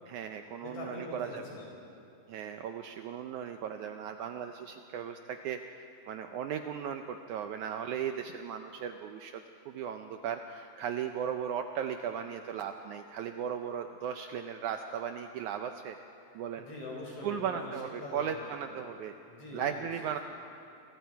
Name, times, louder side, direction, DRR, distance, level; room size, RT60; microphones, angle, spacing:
voice 1, 0.1-1.4 2.3-5.6 6.1-16.0 16.4-16.7 17.2-19.1 19.5-20.2, right 8 dB, 75° right, 6 dB, 1.9 m, -37 dB
voice 2, 0.6-1.9 16.6-17.7 18.0-18.9 19.3-19.8, left 2 dB, 40° left, -3 dB, 6.0 m, -43 dB
27.5 x 23.5 x 4.7 m, 2.6 s
omnidirectional pair, 3.9 m